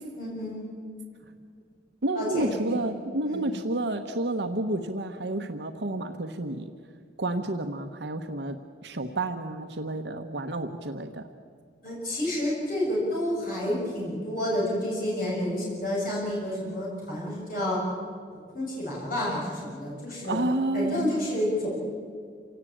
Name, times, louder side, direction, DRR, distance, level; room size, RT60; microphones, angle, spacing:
voice 1, 0.2-0.6 2.1-2.6 3.3-3.4 11.8-17.8 18.3-20.4 20.7-21.9, left 1 dB, 50° left, -4 dB, 6.9 m, -29 dB
voice 2, 2.0-6.7 7.2-8.6 8.8-11.2 20.3-21.2, right 2 dB, 70° right, 5 dB, 1.1 m, -30 dB
27.5 x 17.0 x 8.7 m, 2.2 s
head